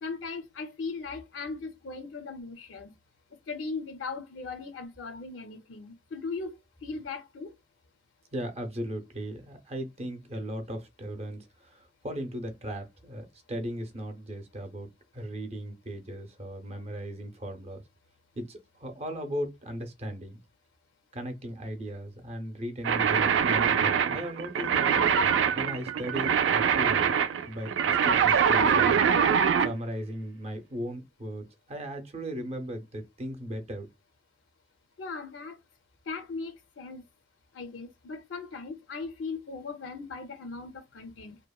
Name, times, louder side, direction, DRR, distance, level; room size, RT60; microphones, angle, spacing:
voice 1, 0.0-2.9 3.5-6.5 6.8-7.5 35.0-35.6 36.1-37.0 37.5-41.4, left 4 dB, 85° left, 0.5 m, -38 dB
voice 2, 8.3-14.9 15.1-17.8 18.4-20.4 21.1-25.0 25.5-27.2 27.5-29.0 29.6-33.9, equal, 35° right, 0.6 m, -37 dB
sound 1, 22.8-29.7, right 7 dB, 80° right, 0.3 m, -24 dB
2.8 x 2.1 x 2.2 m
head